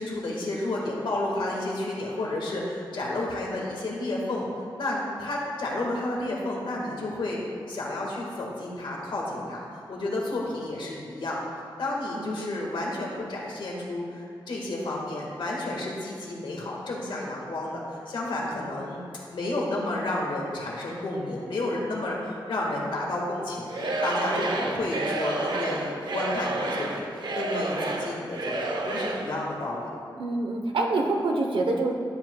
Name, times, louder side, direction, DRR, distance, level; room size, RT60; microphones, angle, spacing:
voice 1, 0.0-4.5 4.8-7.4 7.7-11.4 11.8-19.0 19.3-23.7 24.0-29.9, left 2 dB, 75° left, -3 dB, 1.6 m, -31 dB
voice 2, 12.1-12.6 30.1-31.9, right 2 dB, 90° right, 2 dB, 0.9 m, -26 dB
Singing / Crowd, 23.7-29.3, right 2 dB, 60° right, 0.7 m, -30 dB
12.0 x 7.7 x 2.3 m, 2.3 s
wide cardioid pair, 180°, 9 cm